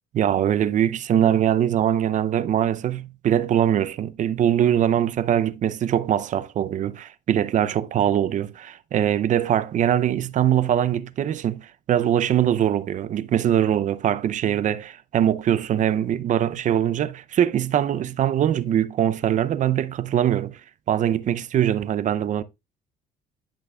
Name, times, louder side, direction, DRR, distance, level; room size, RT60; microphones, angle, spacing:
voice 1, 0.1-20.6 20.9-22.4, right 10 dB, 50° right, 0.6 m, -22 dB
10.5 x 5.8 x 2.3 m
cardioid pair, 110°, 17 cm